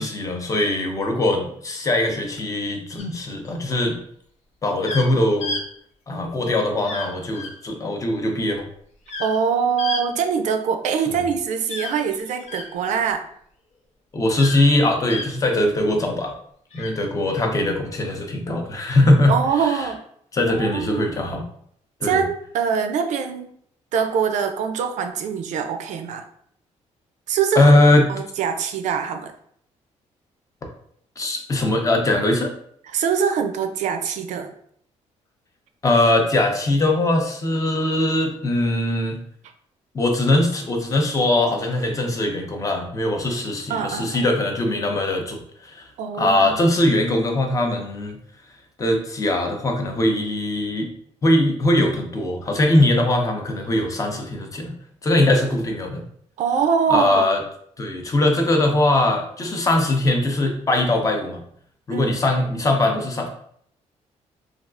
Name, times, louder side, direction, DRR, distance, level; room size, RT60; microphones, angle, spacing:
voice 1, 0.0-4.0 4.6-5.6 6.1-8.6 11.1-11.3 14.1-16.3 16.7-19.3 19.6-19.8 20.3-21.4 22.0-22.2 27.6-28.1 31.2-32.5 35.8-39.2 39.9-45.9 46.2-48.2 48.8-50.9 51.2-54.7 55.0-56.0 56.9-57.4 57.8-61.4 61.9-63.3, left 1 dB, 25° left, 3 dB, 0.6 m, -21 dB
sound 1, 3.0-3.5 4.8-5.1 5.4-5.6 6.8-7.1 7.3-7.5 9.1-9.4 9.8-10.0 11.7-12.7 14.3-14.7 15.1-15.3 16.7-16.9, left 2 dB, 65° left, 0.6 m, -31 dB
voice 2, 9.2-13.3 19.3-20.0 20.6-21.1 22.0-23.5 23.9-26.3 27.3-27.7 28.1-29.3 32.9-34.5 43.7-44.3 46.0-46.6 56.4-57.3 61.9-62.1, right 7 dB, 75° right, 7 dB, 0.4 m, -23 dB
3.3 x 2.4 x 2.4 m, 0.65 s
cardioid pair, 120°, 12 cm